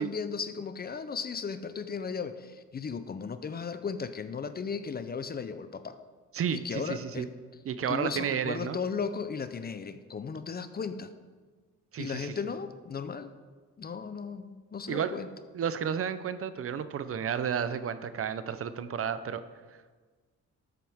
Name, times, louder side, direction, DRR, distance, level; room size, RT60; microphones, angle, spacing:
voice 1, 0.0-6.0 6.5-7.3 7.9-11.1 12.0-13.3 13.8-15.3, left 5 dB, 30° left, 11 dB, 0.6 m, -36 dB
voice 2, 6.3-7.3 7.7-8.8 11.9-12.3 14.9-15.2 15.5-19.4, right 8 dB, 50° right, 12 dB, 0.6 m, -32 dB
13.0 x 7.6 x 3.6 m, 1.4 s
cardioid pair, 90°, 30 cm